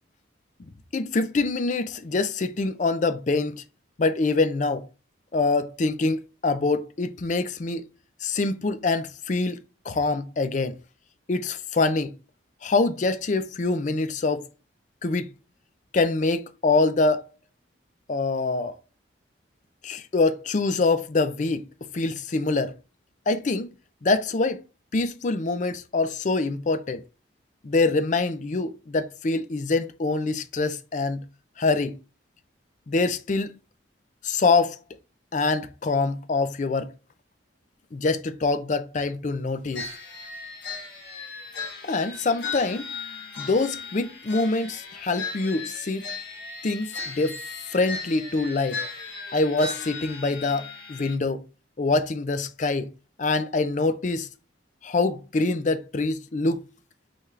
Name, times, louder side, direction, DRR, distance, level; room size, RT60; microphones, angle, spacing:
voice 1, 0.9-3.6 4.0-4.9 5.3-7.9 8.2-10.8 11.3-12.2 12.6-14.5 15.0-15.3 15.9-17.3 18.1-18.7 19.8-21.7 21.9-22.7 23.3-23.7 24.0-24.6 24.9-27.0 27.6-31.2 31.6-32.0 32.9-33.6 34.2-34.8 35.3-36.9 37.9-39.9 41.8-42.9 43.4-46.1 46.6-47.4 47.7-48.8 49.3-51.4 51.8-52.9 53.2-54.3 54.8-56.7, left 3 dB, 40° left, 0.4 m, -25 dB
sound 1, 39.7-51.1, left 4 dB, 60° left, 1.5 m, -37 dB
5.4 x 3.5 x 2.5 m
head